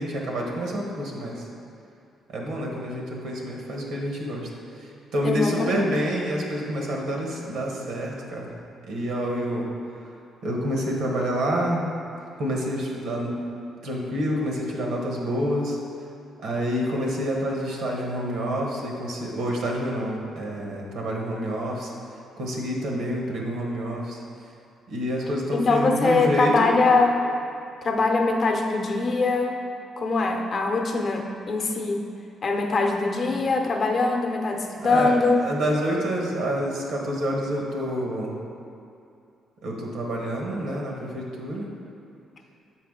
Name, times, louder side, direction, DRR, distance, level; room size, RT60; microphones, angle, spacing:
voice 1, 0.0-1.4 2.3-4.5 5.1-8.5 8.9-9.7 10.4-11.9 12.4-13.4 13.8-15.8 16.4-21.9 22.4-24.2 24.9-26.7 34.8-38.4 39.6-41.7, equal, 85° right, -1 dB, 1.1 m, -28 dB
voice 2, 5.2-6.2 25.5-27.2 27.8-29.6 30.0-32.1 32.4-35.6, left 3 dB, 45° left, 3 dB, 0.7 m, -23 dB
7.4 x 4.7 x 3.7 m, 2.6 s
cardioid pair, 90°, 0 cm